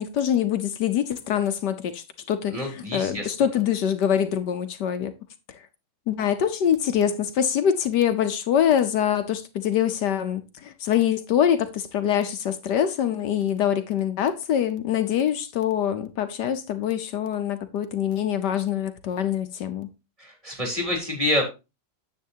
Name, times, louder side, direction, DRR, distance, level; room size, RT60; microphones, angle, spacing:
voice 1, 0.0-5.1 5.5-5.6 6.1-19.9, left 9 dB, 65° left, 1.2 m, -24 dB
voice 2, 2.5-3.3 20.2-21.4, left 1 dB, 15° right, 3.1 m, -27 dB
9.7 x 8.0 x 2.8 m
omnidirectional pair, 2.2 m